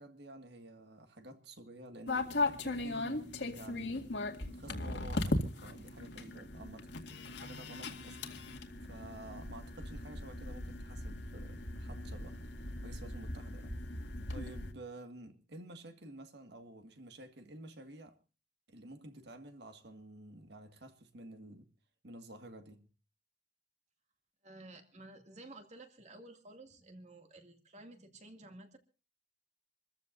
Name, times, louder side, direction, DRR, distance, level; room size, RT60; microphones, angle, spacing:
voice 1, 0.0-6.9 7.4-8.2 8.9-12.4 12.8-13.8 14.3-18.2 18.7-21.7 22.0-22.9, right 1 dB, 65° right, 1.9 m, -51 dB
sound 1, 2.1-14.7, left 2 dB, 70° left, 2.1 m, -38 dB
voice 2, 24.4-28.8, right 2 dB, 40° right, 2.3 m, -53 dB
27.0 x 14.5 x 2.6 m
head